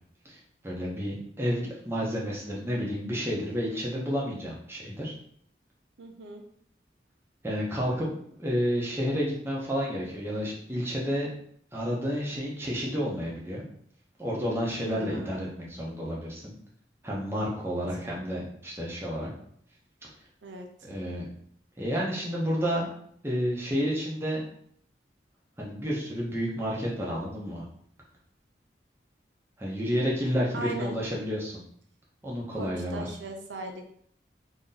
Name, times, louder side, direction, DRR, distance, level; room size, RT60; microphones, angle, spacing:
voice 1, 0.6-5.1 7.4-8.1 8.4-11.3 11.7-13.6 14.2-16.5 17.0-19.3 20.0-20.1 20.8-21.3 21.8-22.9 23.2-24.4 25.6-27.6 29.6-31.5 32.2-33.1, equal, 15° right, -5 dB, 0.8 m, -30 dB
voice 2, 6.0-6.4 14.8-15.5 20.4-20.7 30.5-31.0 32.6-33.8, right 2 dB, 90° right, 3 dB, 0.6 m, -39 dB
3.0 x 2.7 x 3.8 m, 0.65 s
head